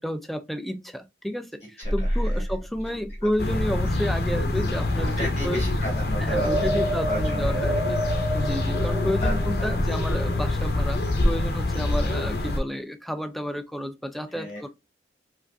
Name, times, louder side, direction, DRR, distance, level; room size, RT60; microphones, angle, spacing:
voice 1, 0.0-5.6 6.2-8.0 8.3-11.0 11.2-14.7, equal, ahead, 0.3 m, -31 dB
voice 2, 1.8-2.4 3.2-3.3 5.0-6.8 7.0-7.5 8.9-9.8 14.3-14.7, equal, 35° left, 1.3 m, -34 dB
sound 1, 1.8-10.5, right 1 dB, 35° right, 1.1 m, -31 dB
sound 2, 3.4-12.6, left 2 dB, 60° left, 0.7 m, -25 dB
4.8 x 2.5 x 2.3 m
head